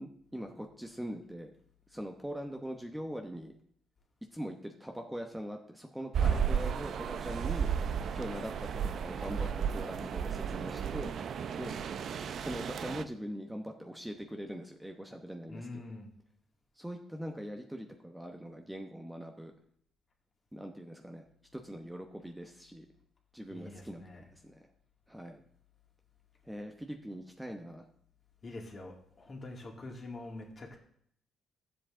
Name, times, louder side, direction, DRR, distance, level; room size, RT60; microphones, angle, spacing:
voice 1, 0.0-1.5 1.9-3.5 4.3-7.7 8.1-11.1 11.6-11.7 12.4-15.8 16.8-19.5 20.5-21.2 21.5-22.9 23.3-24.6 25.1-25.4 26.4-27.9, equal, 5° right, 3 dB, 1.0 m, -42 dB
sound 1, 6.1-13.0, right 7 dB, 65° right, 0.5 m, -33 dB
voice 2, 15.5-16.1 23.5-24.3 28.4-30.8, left 2 dB, 40° left, 0 dB, 2.4 m, -45 dB
12.5 x 7.7 x 3.8 m, 0.66 s
cardioid pair, 90°, 0 cm